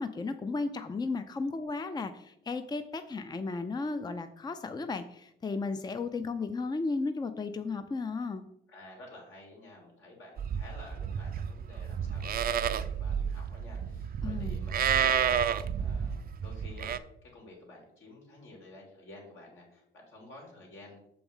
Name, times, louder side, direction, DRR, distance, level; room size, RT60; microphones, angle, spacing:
voice 1, 0.0-8.5 14.2-14.6, left 3 dB, 20° left, 9 dB, 0.5 m, -34 dB
voice 2, 8.7-16.9 17.2-21.0, left 2 dB, 75° left, -1 dB, 3.4 m, -51 dB
Livestock farm animals working animals, 10.4-17.0, right 8 dB, 50° right, 0.5 m, -31 dB
7.0 x 4.7 x 5.5 m, 0.77 s
cardioid pair, 90°, 20 cm